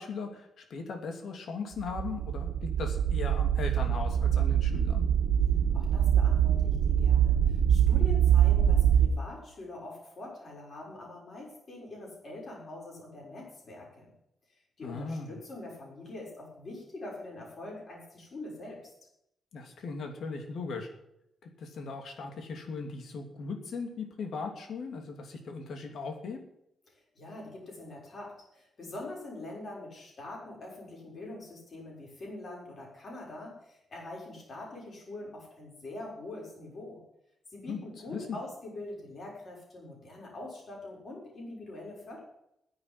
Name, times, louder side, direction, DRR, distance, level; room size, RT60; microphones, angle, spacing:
voice 1, 0.0-5.0 14.8-15.4 19.5-20.9 21.4-26.4 37.7-37.8 38.1-38.4, left 4 dB, 60° left, 4 dB, 2.8 m, -38 dB
sound 1, 1.8-9.1, right 9 dB, 80° right, 1.9 m, -24 dB
voice 2, 5.7-14.1 14.8-18.8 27.1-37.0 37.5-42.2, left 2 dB, 35° left, -3 dB, 6.4 m, -44 dB
10.5 x 8.7 x 9.9 m, 0.79 s
wide cardioid pair, 170°, 0 cm